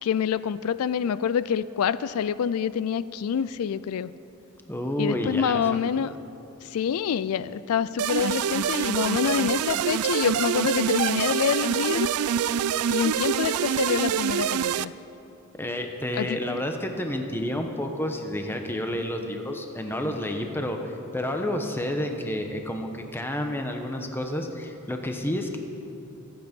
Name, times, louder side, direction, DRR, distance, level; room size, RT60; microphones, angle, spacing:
voice 1, 0.0-4.1 5.0-6.1 6.6-12.1 12.9-14.9 16.2-16.6, left 7 dB, 80° left, 16 dB, 0.4 m, -26 dB
voice 2, 4.7-5.6 15.6-25.6, left 1 dB, 10° left, 4 dB, 1.0 m, -30 dB
sound 1, 8.0-14.8, right 9 dB, 80° right, 0.4 m, -26 dB
24.0 x 8.7 x 5.3 m, 2.9 s
head